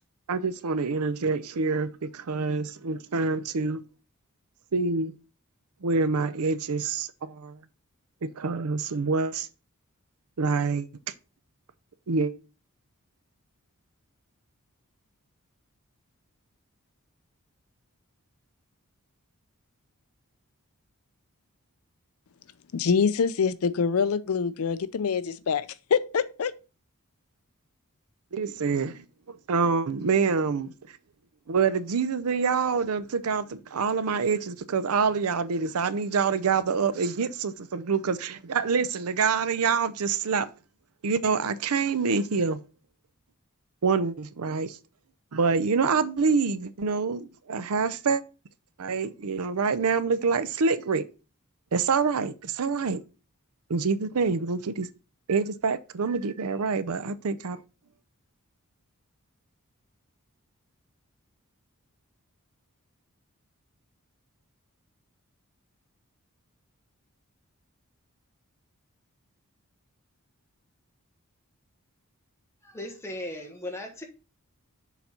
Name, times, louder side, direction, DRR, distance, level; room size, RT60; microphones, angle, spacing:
voice 1, 0.3-3.8 4.7-5.1 5.8-7.6 8.4-9.5 10.4-10.9 12.1-12.3 28.3-30.7 31.5-40.5 41.0-42.6 43.8-44.8 45.3-48.2 48.8-51.0 51.7-53.0 53.7-54.9 55.3-57.6, right 5 dB, 80° right, 0.6 m, -26 dB
voice 2, 22.7-26.5, left 6 dB, 70° left, 0.5 m, -25 dB
voice 3, 72.6-74.0, left 1 dB, 10° left, 1.2 m, -37 dB
7.0 x 4.0 x 4.3 m
head